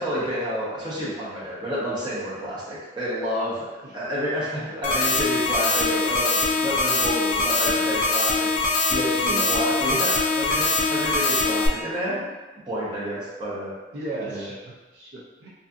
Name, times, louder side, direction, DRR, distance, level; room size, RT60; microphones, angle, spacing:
voice 1, 0.0-3.7 3.9-8.5 8.9-12.3 12.7-13.7 14.3-14.5, equal, 25° right, -9 dB, 0.8 m, -29 dB
sound 1, 4.8-11.7, left 3 dB, 45° left, 0.3 m, -23 dB
voice 2, 9.2-9.5 13.9-15.5, right 2 dB, 75° right, -5 dB, 0.5 m, -35 dB
2.5 x 2.4 x 2.3 m, 1.2 s
head